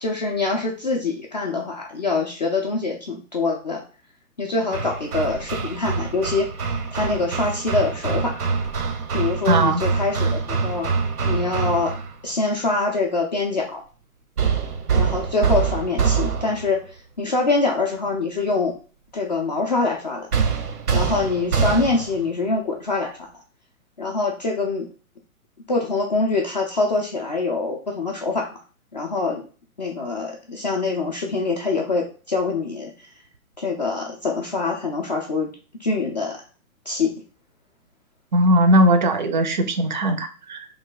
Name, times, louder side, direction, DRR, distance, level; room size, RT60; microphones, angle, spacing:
voice 1, 0.0-3.8 4.4-6.5 6.9-8.4 9.1-10.9 11.2-11.9 12.2-13.8 14.9-16.8 17.2-18.7 19.1-20.3 20.9-23.3 24.0-24.9 25.7-28.5 28.9-29.4 29.8-33.1 33.6-35.5 35.8-36.4 36.9-37.1, left 3 dB, 30° left, 0 dB, 0.4 m, -24 dB
Hammer, 4.7-12.2 14.4-16.8 20.3-22.2, right 5 dB, 90° right, 0.8 m, -24 dB
voice 2, 9.5-9.8 38.3-40.6, right 1 dB, 35° right, 7 dB, 0.4 m, -18 dB
3.2 x 2.3 x 3.7 m, 0.36 s
hypercardioid pair, 135°, 44 cm